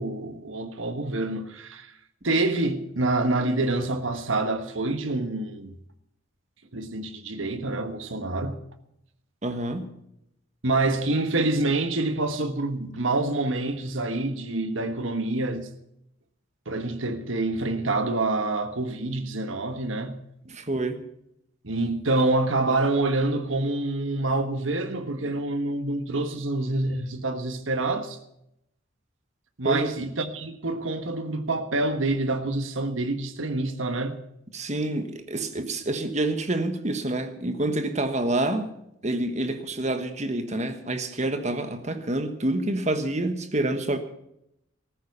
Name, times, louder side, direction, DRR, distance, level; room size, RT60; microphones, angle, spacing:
voice 1, 0.0-1.9 2.2-5.7 6.7-8.6 10.6-15.7 16.7-20.2 21.6-28.2 29.6-34.2, right 2 dB, 75° right, 1.4 m, -27 dB
voice 2, 9.4-9.9 20.4-21.0 29.6-29.9 34.5-38.7 39.0-44.0, right 2 dB, 35° right, 1.4 m, -27 dB
14.5 x 14.0 x 5.5 m
head